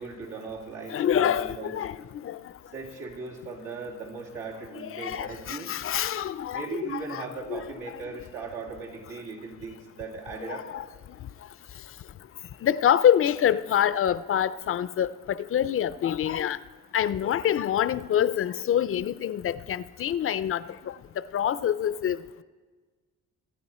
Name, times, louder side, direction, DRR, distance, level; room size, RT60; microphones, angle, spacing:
voice 1, 0.0-1.7 2.7-5.7 6.5-10.7, right 4 dB, 85° right, -3 dB, 2.9 m, -38 dB
voice 2, 0.9-2.4 4.7-8.0 10.5-10.8 12.6-16.6 16.9-22.2, left 10 dB, 45° left, 16 dB, 0.5 m, -26 dB
24.0 x 9.4 x 4.3 m, 1.5 s
cardioid pair, 90°, 30 cm